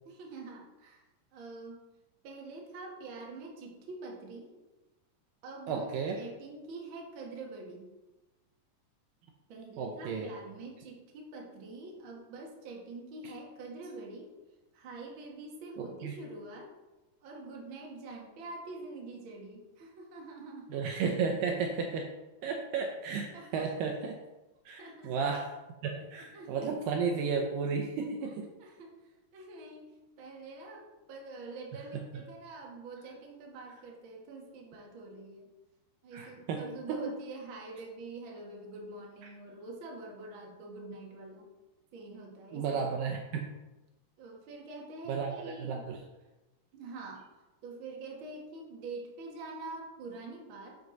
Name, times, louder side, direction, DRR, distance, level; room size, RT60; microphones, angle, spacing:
voice 1, 0.1-1.0 1.3-1.8 2.2-4.5 5.4-5.9 6.1-7.9 9.5-14.3 14.7-16.7 17.2-20.7 23.3-23.7 24.8-25.2 25.8-26.7 28.2-35.5 36.0-41.5 41.9-42.8 44.2-45.9 46.7-47.3 47.6-50.8, right 3 dB, 45° right, -1 dB, 1.8 m, -45 dB
voice 2, 5.7-6.2 9.8-10.3 15.8-16.1 20.7-22.1 22.4-24.2 24.7-25.5 25.8-28.5 36.1-37.0 42.5-43.5 45.1-46.0, right 5 dB, 75° right, 2 dB, 2.3 m, -33 dB
11.0 x 6.0 x 4.0 m, 1.1 s
omnidirectional pair, 4.3 m